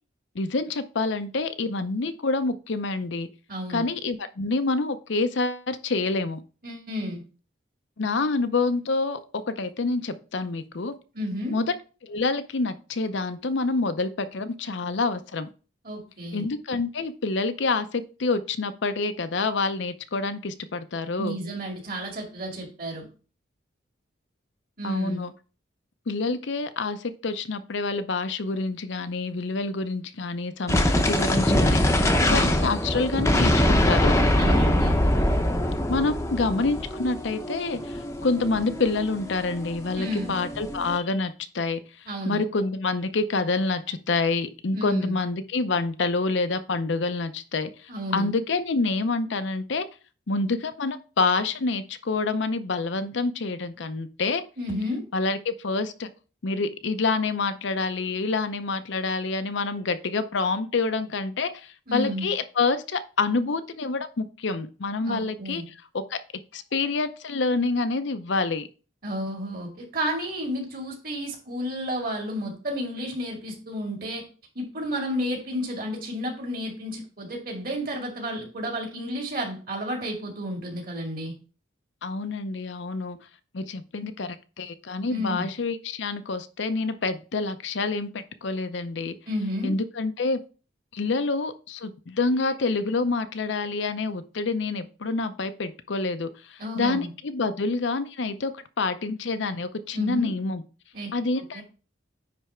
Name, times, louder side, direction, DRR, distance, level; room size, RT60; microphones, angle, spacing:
voice 1, 0.4-3.3 3.7-6.4 8.0-10.9 11.5-11.7 12.0-15.5 16.3-21.4 24.8-25.3 26.1-30.8 31.1-34.2 35.9-41.8 42.3-49.9 50.3-54.4 55.1-56.1 56.4-66.2 66.5-68.7 82.0-83.2 83.5-89.2 89.6-90.4 90.9-100.6 101.1-101.6, left 3 dB, 70° left, 10 dB, 0.6 m, -27 dB
voice 2, 3.5-3.9 6.6-7.2 11.1-11.6 15.8-16.5 21.2-23.1 24.8-25.2 34.4-35.0 40.0-40.3 42.1-42.4 44.7-45.2 47.9-48.3 54.6-55.0 61.9-62.3 65.0-65.7 69.0-74.3 74.6-81.3 85.1-85.5 89.3-89.8 96.6-97.1 99.9-100.3 100.9-101.1 101.5-101.6, equal, 45° right, 1 dB, 2.2 m, -31 dB
sound 1, 30.7-41.0, left 1 dB, 15° left, 0.7 m, -23 dB
9.6 x 3.4 x 4.4 m, 0.36 s
head